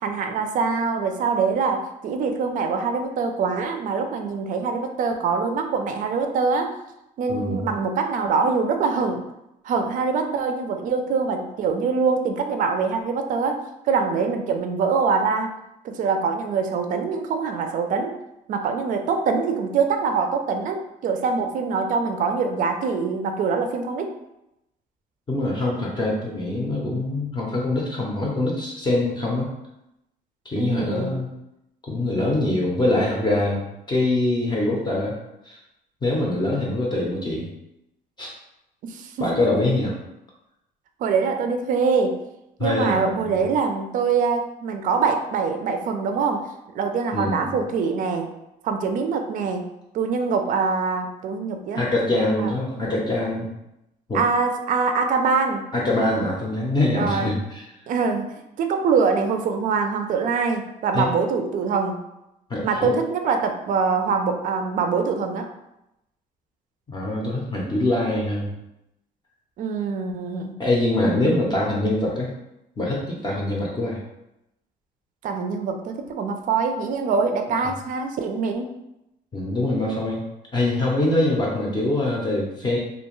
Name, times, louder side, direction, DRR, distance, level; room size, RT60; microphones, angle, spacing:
voice 1, 0.0-6.7 7.2-9.2 9.6-15.5 15.8-18.2 18.5-24.2 30.6-31.2 38.8-39.3 41.0-42.2 42.6-46.5 46.7-48.3 48.6-49.7 49.9-51.8 52.4-52.5 54.1-55.7 57.0-57.3 57.9-58.3 58.6-62.0 62.6-65.5 69.6-70.5 75.2-78.7, right 5 dB, 50° right, 6 dB, 0.4 m, -24 dB
voice 2, 7.3-7.7 25.3-29.5 30.4-31.3 31.9-35.2 35.4-35.6 36.0-37.5 38.2-38.3 39.2-40.0 42.6-43.4 47.1-47.5 51.7-53.5 54.1-54.2 55.7-57.6 60.9-61.0 62.5-63.0 66.9-68.5 70.6-72.3 72.8-74.0 79.3-80.2 80.5-82.8, left 1 dB, 25° left, -3 dB, 0.6 m, -24 dB
2.5 x 2.2 x 3.0 m, 0.88 s
cardioid pair, 110°, 17 cm